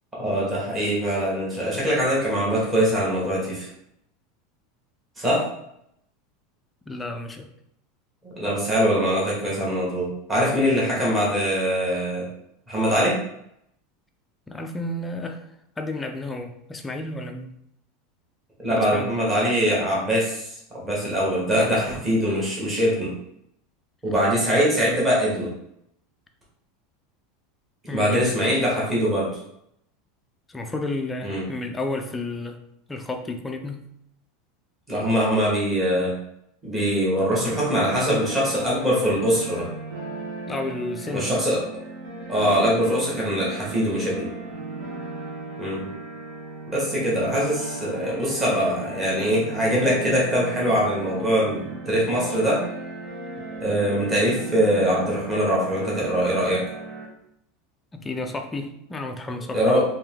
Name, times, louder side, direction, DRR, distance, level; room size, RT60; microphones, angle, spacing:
voice 1, 0.2-3.7 5.2-5.5 8.2-12.3 12.7-13.2 18.6-23.1 24.0-25.5 27.9-29.4 31.2-31.4 34.9-36.2 36.6-39.7 41.1-41.6 42.3-44.3 45.6-45.9 46.7-52.7 53.6-56.6 59.5-59.8, equal, 10° right, -6 dB, 1.2 m, -23 dB
voice 2, 6.9-7.5 14.5-15.5 15.8-17.5 18.7-19.1 21.6-22.1 27.9-28.4 30.5-32.6 32.9-33.9 40.5-41.4 57.9-59.8, left 2 dB, 10° left, 5 dB, 0.3 m, -32 dB
sound 1, 37.5-57.1, right 2 dB, 60° right, 1.2 m, -36 dB
3.6 x 2.8 x 3.4 m, 0.77 s
supercardioid pair, 175°, 0 cm